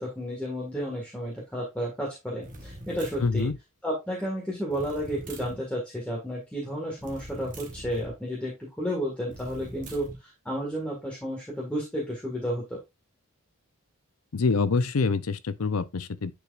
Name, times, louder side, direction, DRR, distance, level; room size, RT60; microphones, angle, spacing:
voice 1, 0.0-3.5 3.8-12.8, equal, 5° left, 1.8 m, -32 dB
sound 1, 2.4-3.6 4.7-5.6 7.0-8.1 9.3-10.2, right 1 dB, 40° right, 1.7 m, -43 dB
voice 2, 3.2-3.6 14.3-16.3, left 4 dB, 90° left, 0.6 m, -26 dB
9.8 x 4.7 x 2.5 m
head